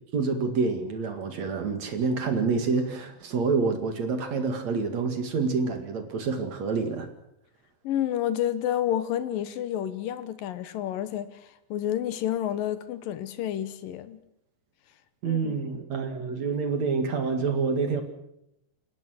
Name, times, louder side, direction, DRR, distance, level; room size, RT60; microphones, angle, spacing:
voice 1, 0.1-7.1 15.2-18.0, right 4 dB, 50° right, 7 dB, 2.9 m, -27 dB
voice 2, 7.8-14.2 15.2-15.6, left 11 dB, 70° left, 13 dB, 2.5 m, -30 dB
29.0 x 17.5 x 6.5 m, 0.78 s
omnidirectional pair, 4.7 m